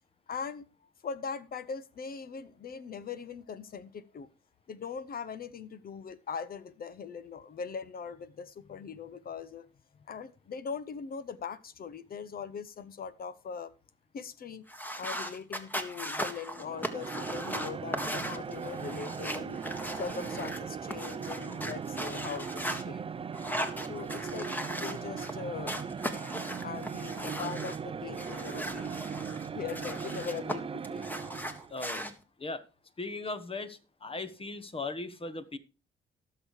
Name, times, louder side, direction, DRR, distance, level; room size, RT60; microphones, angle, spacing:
voice 1, 0.3-4.3 4.7-9.7 10.1-13.7 14.1-14.6 15.0-19.6 19.9-23.1 23.9-24.5 24.8-25.8 26.6-29.0 29.5-31.1, left 6 dB, 50° left, 0.8 m, -40 dB
sound 1, 14.7-22.8 23.3-25.3 25.6-27.8 28.1-30.6 30.8-32.1, equal, 10° left, 1.7 m, -38 dB
sound 2, 16.5-31.8, right 6 dB, 30° right, 0.5 m, -39 dB
voice 2, 31.7-32.1 32.4-32.6 33.0-35.6, left 3 dB, 30° left, 1.3 m, -38 dB
18.5 x 6.7 x 3.2 m
cardioid pair, 90°, 20 cm